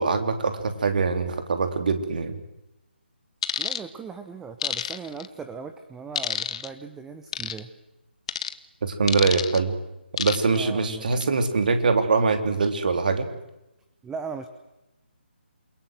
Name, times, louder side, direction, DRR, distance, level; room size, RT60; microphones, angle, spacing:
voice 1, 0.0-2.4 8.8-9.7 10.2-13.3, right 4 dB, 50° right, 7 dB, 3.2 m, -23 dB
sound 1, 3.4-3.8 4.6-5.3 6.2-6.7 7.3-7.6 8.3-8.5 9.1-9.6 10.2-10.6 11.0-11.2, left 9 dB, 30° left, 1.0 m, -28 dB
voice 2, 3.6-7.7 10.5-11.4 14.0-14.5, right 5 dB, 5° right, 8 dB, 1.0 m, -38 dB
28.5 x 22.5 x 7.8 m, 0.94 s
figure-of-eight pair, 145°, 6 cm